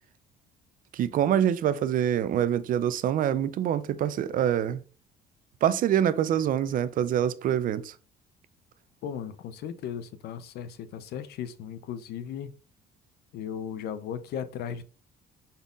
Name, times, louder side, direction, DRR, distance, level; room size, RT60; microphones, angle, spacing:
voice 1, 0.9-4.8 5.6-7.9, right 10 dB, 55° right, 0.5 m, -25 dB
voice 2, 9.0-12.5 13.3-14.8, left 8 dB, 70° left, 0.6 m, -36 dB
5.3 x 4.1 x 2.4 m
cardioid pair, 110°, 17 cm